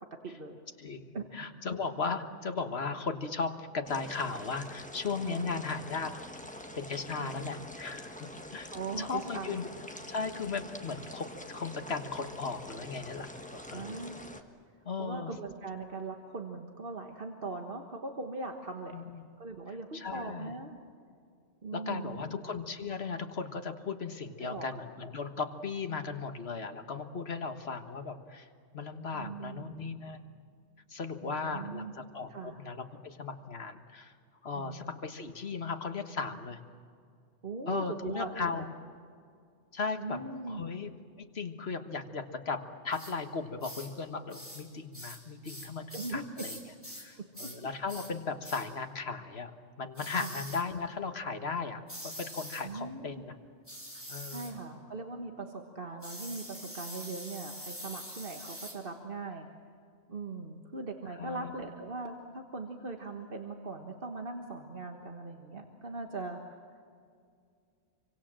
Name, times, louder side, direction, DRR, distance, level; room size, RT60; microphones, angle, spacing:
voice 1, 0.0-0.6 1.1-1.3 5.2-5.6 7.2-7.5 8.7-9.6 13.7-14.2 15.0-19.0 19.4-20.8 21.6-22.3 24.4-24.7 29.1-29.8 31.2-31.9 32.3-32.6 34.5-34.9 37.4-38.7 40.0-40.6 45.9-46.5 47.2-47.5 50.2-50.4 52.6-53.2 54.3-59.5 60.1-66.7, right 3 dB, 50° right, 3 dB, 1.6 m, -40 dB
voice 2, 0.8-6.2 6.8-9.7 10.1-14.0 14.8-15.3 18.9-19.2 19.7-20.5 21.7-28.5 28.7-30.2 30.9-34.1 34.4-36.6 37.7-38.6 39.7-40.2 40.5-46.6 47.0-49.5 49.8-53.3 54.1-54.5 61.2-61.5, left 4 dB, 55° left, 7 dB, 1.7 m, -37 dB
sound 1, 3.9-14.4, left 1 dB, 5° left, 1.4 m, -46 dB
sound 2, 42.9-43.2 43.6-43.9 44.3-44.7 44.9-47.1 47.3-47.6 47.9-48.1 48.4-48.7 50.0-50.7 51.9-52.7 53.7-54.6 56.0-58.8, equal, 10° right, 3.9 m, -44 dB
27.0 x 24.5 x 7.6 m, 2.3 s
omnidirectional pair, 1.2 m